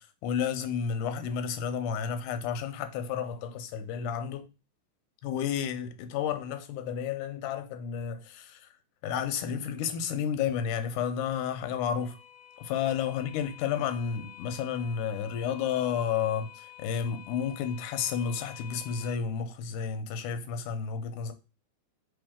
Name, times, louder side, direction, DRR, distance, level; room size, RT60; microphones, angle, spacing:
voice 1, 0.0-4.5 5.2-8.7 9.0-12.2 12.6-21.3, left 7 dB, 90° left, 2.1 m, -31 dB
sound 1, 10.2-19.1, left 11 dB, 70° left, 1.7 m, -50 dB
4.4 x 3.2 x 3.5 m
omnidirectional pair, 3.5 m